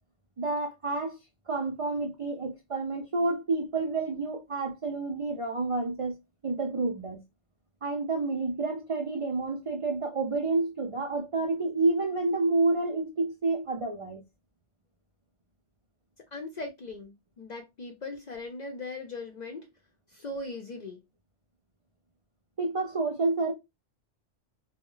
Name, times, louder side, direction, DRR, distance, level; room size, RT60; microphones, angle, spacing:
voice 1, 0.4-1.2 1.5-6.2 6.4-7.2 7.8-14.2 22.6-23.5, right 3 dB, 55° right, 0.3 m, -29 dB
voice 2, 16.3-19.7 20.1-21.0, left 2 dB, 55° left, 0.5 m, -39 dB
2.2 x 2.1 x 3.7 m
omnidirectional pair, 1.2 m